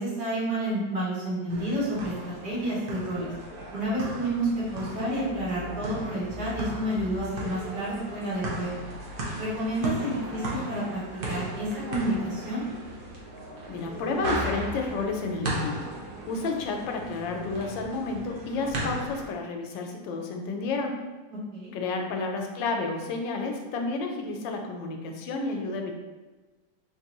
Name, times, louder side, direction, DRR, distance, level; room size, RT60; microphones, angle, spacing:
voice 1, 0.0-3.3 3.7-8.8 9.4-11.0 11.3-12.6 21.5-21.7, right 1 dB, 60° right, -8 dB, 1.8 m, -30 dB
sound 1, 1.5-19.3, right 1 dB, 85° right, 0.4 m, -36 dB
voice 2, 13.7-15.9 16.3-21.0 21.7-26.0, left 3 dB, 90° left, 3 dB, 1.3 m, -31 dB
4.0 x 2.6 x 2.9 m, 1.3 s
omnidirectional pair, 1.9 m